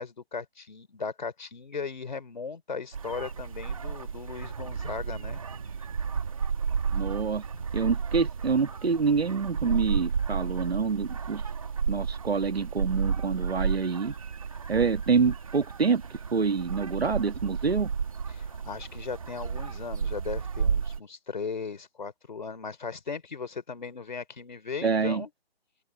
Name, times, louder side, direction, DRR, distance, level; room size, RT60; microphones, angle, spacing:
voice 1, 0.0-5.4 7.5-7.6 18.3-25.3, left 5 dB, 50° left, 3.7 m, -37 dB
sound 1, 2.9-21.0, right 6 dB, 35° right, 2.4 m, -32 dB
voice 2, 6.9-7.4 7.7-11.4 11.9-14.1 14.7-16.0 16.3-17.9 24.8-25.2, right 5 dB, 85° right, 2.4 m, -26 dB
open air
hypercardioid pair, 180°, 30 cm